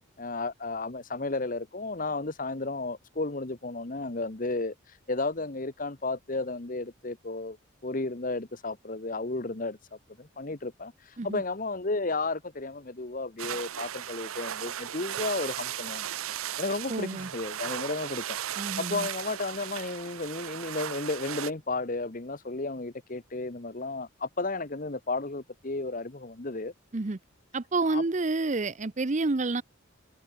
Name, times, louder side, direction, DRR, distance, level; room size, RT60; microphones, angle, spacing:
voice 1, 0.2-4.7 5.1-7.6 7.8-16.1 16.6-18.4 18.8-26.7 27.9-28.0, left 3 dB, 40° left, 1.1 m, -33 dB
sound 1, 13.4-21.5, right 10 dB, 85° right, 0.6 m, -36 dB
voice 2, 16.9-17.3 18.6-19.1 26.9-27.2 27.5-29.6, right 3 dB, 35° right, 0.6 m, -29 dB
head